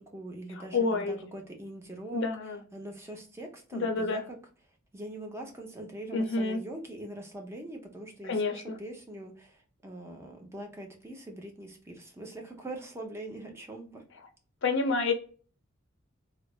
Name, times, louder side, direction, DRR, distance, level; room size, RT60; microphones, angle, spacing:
voice 1, 0.0-4.4 4.9-14.0, right 1 dB, 15° right, 0.6 m, -43 dB
voice 2, 0.7-1.2 2.1-2.6 3.7-4.2 6.1-6.6 8.2-8.8 14.6-15.1, left 3 dB, 60° left, 0.6 m, -28 dB
3.1 x 2.0 x 2.2 m
head